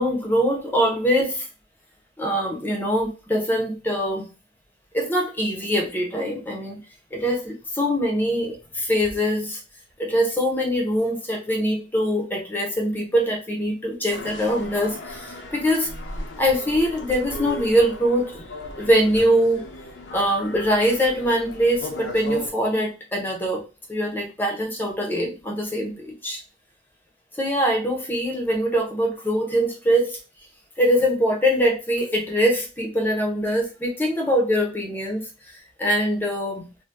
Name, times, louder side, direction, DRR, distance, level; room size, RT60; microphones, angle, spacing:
voice 1, 0.0-1.5 2.2-4.3 4.9-6.8 7.1-9.6 10.0-15.9 16.4-18.4 18.8-19.6 20.1-23.6 23.9-26.4 27.3-30.2 30.8-36.7, equal, 10° left, 0 dB, 0.7 m, -23 dB
sound 1, 14.1-22.5, left 1 dB, 90° left, 0.7 m, -37 dB
2.7 x 2.2 x 3.4 m, 0.31 s
head